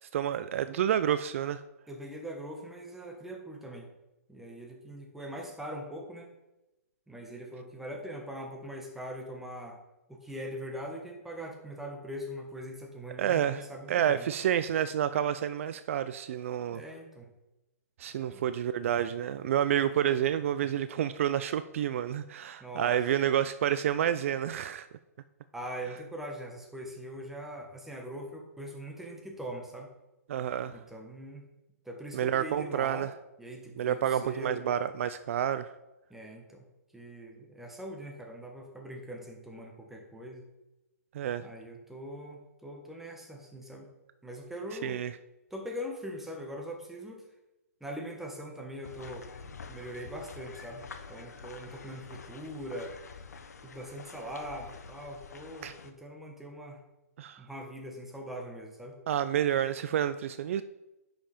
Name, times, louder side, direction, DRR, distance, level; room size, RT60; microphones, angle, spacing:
voice 1, 0.1-1.6 13.2-16.8 18.0-24.9 30.3-30.8 32.1-33.1 33.8-35.7 41.1-41.4 44.8-45.1 55.6-55.7 57.2-57.4 59.1-60.6, right 10 dB, 55° right, 0.4 m, -29 dB
voice 2, 1.9-3.9 4.3-6.3 7.1-9.8 10.1-14.3 16.7-17.3 18.2-18.5 22.6-23.0 25.5-29.9 30.7-31.4 31.8-33.1 33.4-34.7 36.1-36.7 36.9-40.5 41.4-43.9 44.2-45.0 45.5-47.3 47.8-49.3 49.7-53.0 53.6-56.8 57.4-59.0, equal, 5° right, 1.4 m, -42 dB
sound 1, 48.8-55.9, left 5 dB, 85° left, 1.0 m, -47 dB
10.0 x 5.8 x 4.3 m
hypercardioid pair, 145°, 9 cm